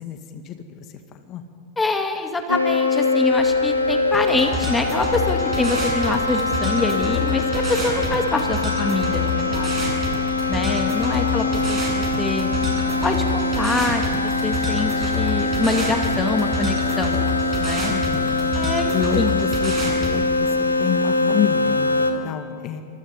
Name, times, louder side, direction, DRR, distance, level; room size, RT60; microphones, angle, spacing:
voice 1, 0.0-1.4 10.5-11.7 17.9-22.8, left 9 dB, 35° left, 7 dB, 2.1 m, -30 dB
voice 2, 1.8-9.7 10.5-12.5 13.0-17.2 17.6-17.9 18.5-19.4, left 3 dB, 10° left, 5 dB, 2.0 m, -25 dB
sound 1, 2.5-22.1, left 3 dB, 80° left, 1.8 m, -23 dB
sound 2, 3.3-16.4, equal, 90° right, 7.1 m, -41 dB
sound 3, 4.1-20.1, left 1 dB, 25° right, 7.9 m, -28 dB
28.0 x 26.0 x 5.6 m, 2.4 s
figure-of-eight pair, 90°, 0 cm